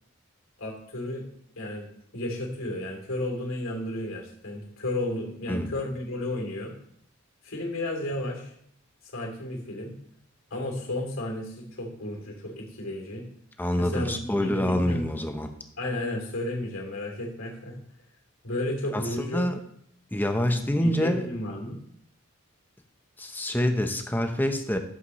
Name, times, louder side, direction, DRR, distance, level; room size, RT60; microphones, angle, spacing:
voice 1, 0.6-1.2 1.6-1.9 2.1-6.7 7.4-8.5 9.1-9.9 10.5-13.2 13.8-15.0 15.8-17.8 18.4-19.4 20.5-21.8, left 1 dB, 70° left, 0 dB, 2.8 m, -33 dB
voice 2, 13.6-15.5 18.9-19.6 20.1-21.3 23.2-24.8, left 1 dB, 10° left, 6 dB, 0.7 m, -26 dB
11.0 x 8.2 x 3.1 m, 0.68 s
head